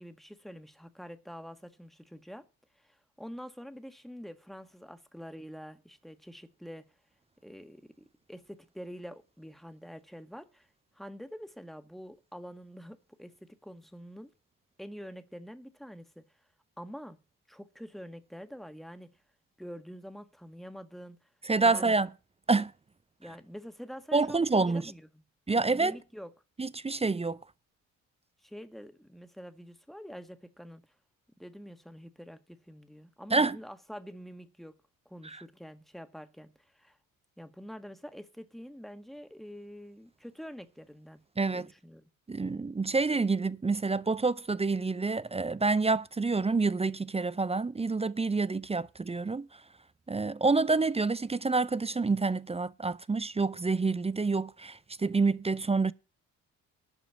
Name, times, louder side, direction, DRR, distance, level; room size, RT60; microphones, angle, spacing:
voice 1, 0.0-2.5 2.8-6.9 7.4-10.7 10.9-14.3 14.8-16.2 16.8-17.2 17.5-19.1 19.6-21.2 21.6-21.9 23.2-25.2 25.7-26.3 28.4-30.8 31.4-34.8 35.0-37.0 37.4-41.2 41.5-42.1, equal, ahead, 1.6 m, -46 dB
voice 2, 21.5-22.1 22.5-22.7 24.1-24.9 25.5-25.9 26.6-27.4 33.3-33.6 35.2-35.4 41.4-41.7 42.3-49.5 50.1-55.9, right 3 dB, 15° right, 0.5 m, -28 dB
11.5 x 5.0 x 8.2 m
hypercardioid pair, 50°, 40 cm